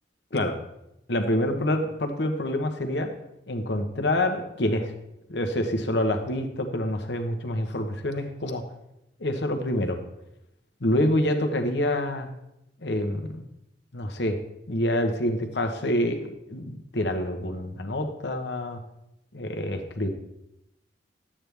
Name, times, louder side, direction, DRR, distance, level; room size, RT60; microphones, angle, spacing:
voice 1, 1.1-3.1 3.5-4.9 5.3-8.6 9.2-10.0 10.8-12.3 12.8-13.4 13.9-14.4 14.7-18.8 19.3-20.1, left 1 dB, 75° left, 5 dB, 1.1 m, -27 dB
11.0 x 8.7 x 3.4 m, 0.85 s
head